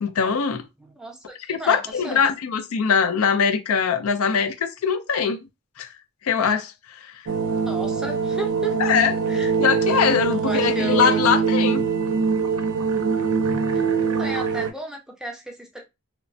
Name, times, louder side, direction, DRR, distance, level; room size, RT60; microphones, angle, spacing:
voice 1, 0.0-0.6 1.5-5.4 5.8-5.9 6.2-7.1 8.8-9.1 9.6-11.8, left 6 dB, 70° left, 0.4 m, -22 dB
voice 2, 0.8-2.3 7.7-8.8 9.3-9.5 10.3-11.2 13.7-15.8, right 2 dB, 5° right, 0.5 m, -34 dB
sound 1, 7.3-14.7, right 5 dB, 75° right, 0.5 m, -23 dB
3.0 x 2.1 x 2.6 m
head